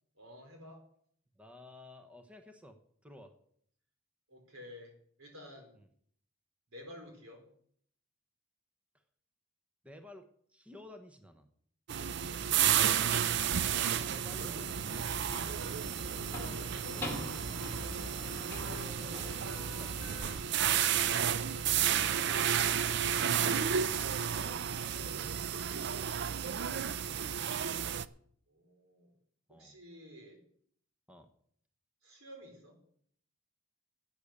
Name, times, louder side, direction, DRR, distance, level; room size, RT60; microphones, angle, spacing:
voice 1, 0.2-0.9 4.3-5.7 6.7-7.5 12.4-14.6 16.2-17.3 21.5-22.6 28.5-29.1 29.5-30.4 32.0-32.8, left 1 dB, 90° right, 3 dB, 4.2 m, -52 dB
voice 2, 1.4-3.3 5.8-5.9 9.8-11.5 14.1-15.6 18.6-20.1 24.3-26.2 29.5-29.8 31.1-31.3, equal, 5° right, 6 dB, 1.0 m, -53 dB
sound 1, 11.9-28.1, right 9 dB, 55° right, 0.5 m, -32 dB
sound 2, 14.3-20.4, left 1 dB, 10° left, 2.3 m, -44 dB
Wind instrument woodwind instrument, 16.6-20.4 20.7-25.3, left 5 dB, 80° left, 0.7 m, -52 dB
12.0 x 8.6 x 6.7 m, 0.63 s
head